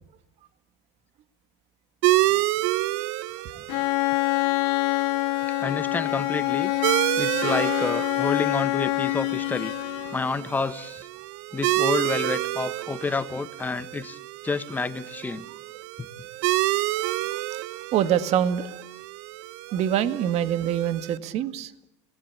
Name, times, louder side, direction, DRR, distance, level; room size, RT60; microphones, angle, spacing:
sound 1, 2.0-21.2, right 19 dB, 75° right, 1.0 m, -29 dB
Bowed string instrument, 3.7-10.4, left 22 dB, 70° left, 1.7 m, -26 dB
voice 1, 5.6-6.7 7.2-9.7 10.1-11.1 11.5-15.5 16.0-16.1, left 4 dB, 10° left, 12 dB, 1.3 m, -29 dB
voice 2, 17.0-17.6 17.9-18.8 19.7-21.7, right 10 dB, 45° right, 11 dB, 1.9 m, -25 dB
29.5 x 19.0 x 8.7 m, 0.91 s
supercardioid pair, 140°, 15 cm